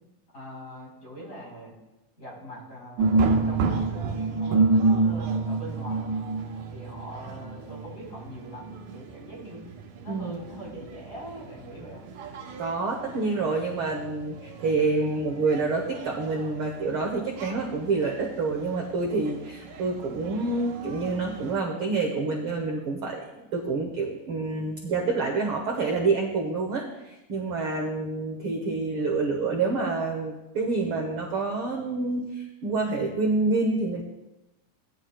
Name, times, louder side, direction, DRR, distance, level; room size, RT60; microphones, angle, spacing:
voice 1, 0.3-1.7 2.2-3.2 3.4-6.2 6.7-9.7 10.0-12.0, equal, 25° left, -5 dB, 4.6 m, -42 dB
sound 1, 3.0-21.6, right 3 dB, 75° right, 2.4 m, -30 dB
voice 2, 10.1-10.4 12.6-34.0, right 3 dB, 60° right, 1 dB, 1.5 m, -27 dB
18.0 x 10.5 x 2.3 m, 1.0 s
omnidirectional pair, 3.6 m